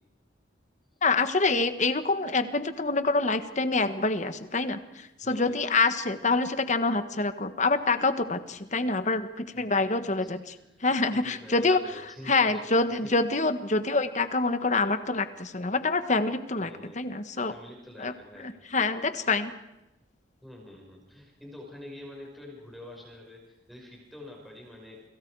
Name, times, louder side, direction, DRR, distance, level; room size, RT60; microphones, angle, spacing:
voice 1, 1.0-10.6 10.8-11.8 12.3-17.5 18.0-18.1 18.4-19.5, left 3 dB, 40° left, 10 dB, 1.5 m, -26 dB
voice 2, 5.2-5.9 9.5-10.7 11.1-13.1 16.6-17.0 17.4-18.9 20.4-25.0, left 1 dB, ahead, -1 dB, 5.3 m, -47 dB
30.0 x 25.5 x 4.8 m, 0.96 s
head